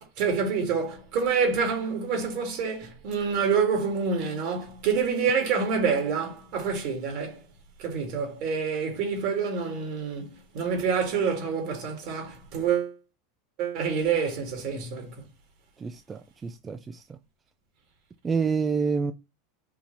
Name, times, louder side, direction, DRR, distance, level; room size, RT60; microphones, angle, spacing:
voice 1, 0.0-7.4 7.8-12.9 13.6-15.2, right 6 dB, 60° right, 2.2 m, -27 dB
voice 2, 15.8-17.0 18.2-19.1, right 5 dB, 20° right, 0.4 m, -28 dB
4.6 x 2.7 x 4.1 m
hypercardioid pair, 105°, 0 cm